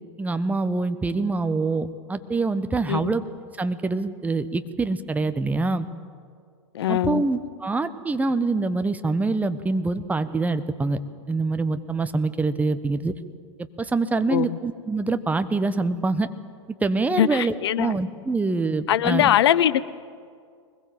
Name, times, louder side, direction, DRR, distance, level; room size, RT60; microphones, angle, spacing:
voice 1, 0.2-3.2 3.6-5.9 6.9-11.0 11.3-13.1 13.8-16.3 16.8-19.3, right 3 dB, 10° right, 1.0 m, -25 dB
voice 2, 6.7-7.2 14.3-14.6 17.2-18.0 18.9-19.8, left 11 dB, 60° left, 0.7 m, -21 dB
23.0 x 20.5 x 7.7 m
figure-of-eight pair, 95°, 15 cm